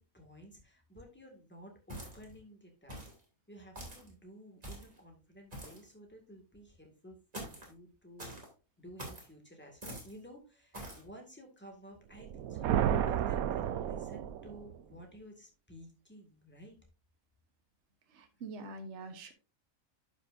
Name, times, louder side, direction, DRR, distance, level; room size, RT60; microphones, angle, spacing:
voice 1, 0.0-3.0 3.5-8.3 8.8-16.8, equal, 10° left, 1 dB, 1.9 m, -53 dB
sound 1, 1.9-2.4 2.9-3.2 3.8-4.1 4.6-5.0 5.5-5.9 7.3-7.7 8.2-8.5 9.0-9.3 9.8-10.1 10.7-11.0, right 1 dB, 25° right, 2.7 m, -45 dB
sound 2, 12.2-14.8, right 10 dB, 90° right, 1.1 m, -32 dB
voice 2, 18.1-19.3, right 3 dB, 55° right, 6 dB, 1.3 m, -45 dB
10.5 x 6.0 x 2.6 m, 0.32 s
omnidirectional pair, 1.5 m